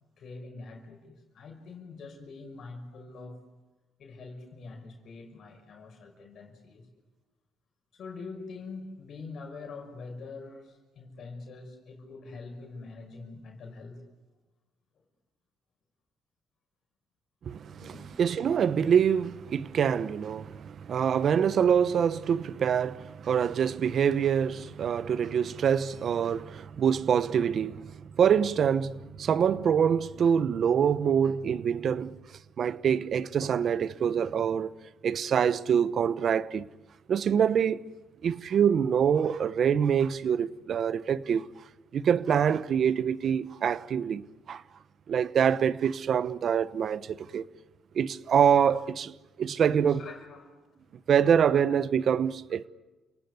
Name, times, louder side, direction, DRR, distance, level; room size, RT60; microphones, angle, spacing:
voice 1, 0.2-3.5 4.0-6.9 7.9-14.0 14.9-15.0 17.7-18.2 49.9-51.0, left 3 dB, 65° left, 5.8 m, -44 dB
voice 2, 17.5-17.9 18.2-27.9 28.2-32.2 32.6-34.7 35.0-36.7 37.1-37.8 38.2-41.5 41.9-44.6 45.1-47.4 47.9-50.0 51.1-52.7, right 8 dB, 60° right, 1.0 m, -25 dB
29.5 x 19.0 x 9.7 m
cardioid pair, 90°, 0 cm